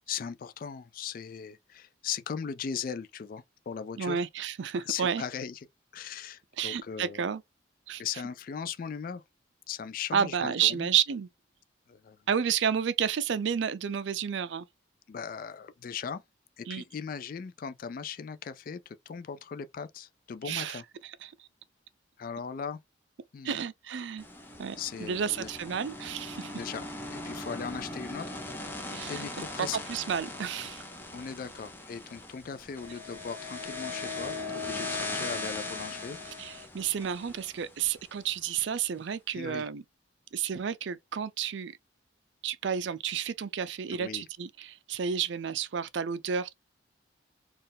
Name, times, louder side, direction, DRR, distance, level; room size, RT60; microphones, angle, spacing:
voice 1, 0.1-4.2 4.8-5.7 5.9-7.2 8.0-9.2 9.7-10.9 11.9-12.2 15.1-16.2 16.6-20.8 22.2-22.8 23.3-23.6 24.8-25.5 26.4-28.4 29.1-29.8 31.1-36.2 39.3-39.7 43.9-44.2, left 7 dB, 45° left, 0.3 m, -38 dB
voice 2, 4.0-5.2 6.6-7.4 7.9-8.0 10.1-11.3 12.3-14.7 16.7-16.8 20.4-20.8 21.2-21.3 23.4-24.2 24.6-26.5 28.9-29.3 29.6-30.8 36.4-39.8 40.3-41.7 42.4-46.5, right 7 dB, 70° right, 0.4 m, -31 dB
sound 1, 24.2-38.4, left 2 dB, 10° left, 0.7 m, -39 dB
4.3 x 2.4 x 3.4 m
head